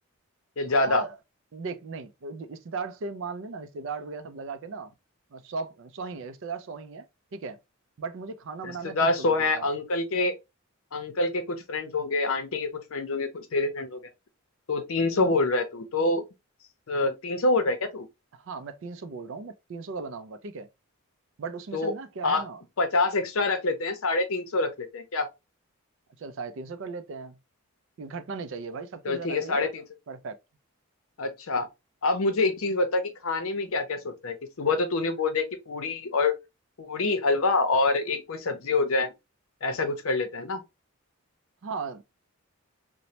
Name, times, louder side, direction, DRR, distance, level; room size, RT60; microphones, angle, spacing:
voice 1, 0.6-1.0 8.6-10.3 10.9-14.0 14.7-16.2 16.9-18.1 21.7-21.9 22.2-22.4 22.8-25.3 29.0-29.8 31.2-31.7 32.0-36.3 36.8-39.1 39.6-40.6, left 3 dB, 65° left, 0.6 m, -26 dB
voice 2, 1.5-4.9 5.3-7.1 7.3-7.6 8.0-9.7 18.3-20.7 21.4-22.6 26.2-27.4 28.0-29.7 30.1-30.4 41.6-42.0, right 4 dB, 55° right, 0.4 m, -37 dB
3.0 x 2.1 x 2.7 m
head